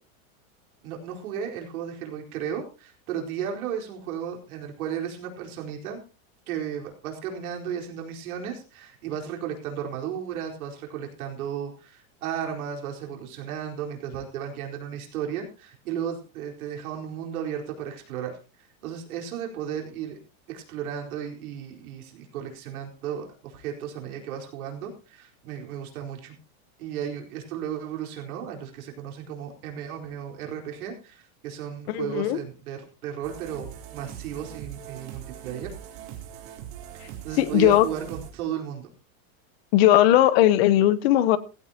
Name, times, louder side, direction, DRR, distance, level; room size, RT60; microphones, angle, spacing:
voice 1, 0.8-6.0 6.5-18.4 18.8-20.2 20.5-26.3 26.8-35.7 37.2-38.9, right 9 dB, 80° right, 4.5 m, -34 dB
voice 2, 31.9-32.4 37.4-37.9 39.7-41.4, left 13 dB, 45° left, 1.0 m, -18 dB
sound 1, 33.2-38.3, right 10 dB, 50° right, 3.7 m, -41 dB
16.5 x 16.0 x 2.9 m
supercardioid pair, 180°, 42 cm